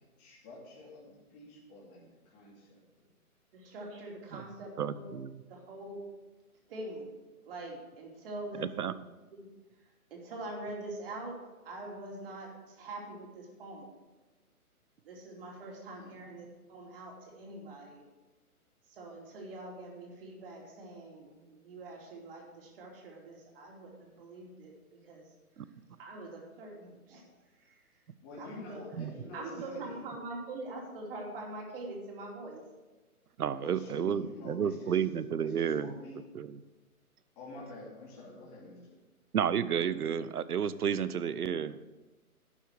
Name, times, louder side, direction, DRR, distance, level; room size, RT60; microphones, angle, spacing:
voice 1, 0.0-3.1 15.9-16.2 28.2-30.0 33.5-35.0 35.4-36.2 37.4-39.0, left 2 dB, 25° left, -5 dB, 3.0 m, -48 dB
voice 2, 3.5-5.1 5.5-6.0 6.7-7.1 7.4-8.9 9.3-9.5 9.8-11.4 11.6-13.9 15.0-18.1 18.8-25.7 26.0-28.0 28.4-29.0 29.3-32.6, right 2 dB, 40° right, -1 dB, 2.9 m, -44 dB
voice 3, 4.8-5.3 8.6-8.9 29.0-29.1 33.4-35.9 36.3-36.6 39.3-41.8, right 8 dB, 80° right, 15 dB, 0.8 m, -31 dB
11.5 x 6.5 x 6.0 m, 1.1 s
hypercardioid pair, 150°, 45 cm